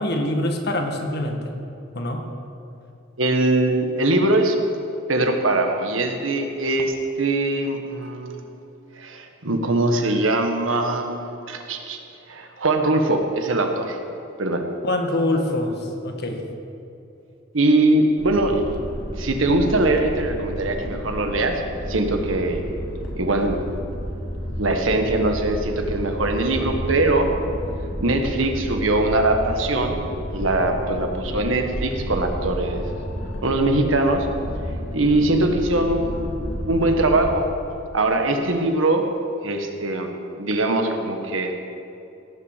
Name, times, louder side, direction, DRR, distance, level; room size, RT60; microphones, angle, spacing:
voice 1, 0.0-1.4 1.9-2.2 14.8-15.8 16.0-16.4, left 1 dB, 55° left, 3 dB, 1.7 m, -24 dB
voice 2, 3.2-4.6 5.1-8.4 9.0-12.0 12.3-14.0 14.4-14.6 17.5-18.7 19.2-21.6 21.9-22.6 23.2-23.6 24.6-27.3 28.0-30.0 30.3-32.8 33.4-34.3 34.9-37.5 37.9-39.0 39.4-40.1 40.4-41.5, right 2 dB, 80° right, 4 dB, 1.5 m, -22 dB
sound 1, 18.2-37.3, equal, 70° left, 2.7 m, -31 dB
17.0 x 7.3 x 7.4 m, 2.8 s
head